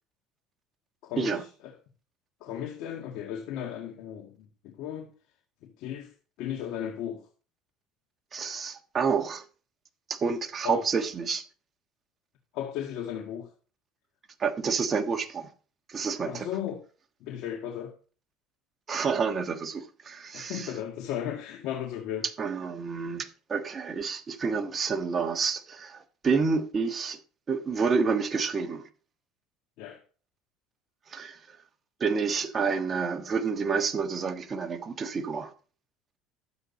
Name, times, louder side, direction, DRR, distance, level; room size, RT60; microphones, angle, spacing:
voice 1, 1.0-1.7 2.4-5.1 5.6-6.1 6.4-7.2 10.6-10.8 12.5-13.5 16.2-16.8 17.2-17.9 20.3-22.3 29.8-30.0, left 10 dB, 65° left, 2.1 m, -35 dB
voice 2, 8.3-9.4 10.1-11.4 14.4-15.5 15.9-16.5 18.9-20.7 22.4-27.2 27.5-28.9 31.1-31.6 32.0-35.5, right 5 dB, 30° right, 1.4 m, -29 dB
12.5 x 7.9 x 4.2 m
supercardioid pair, 115°, 0 cm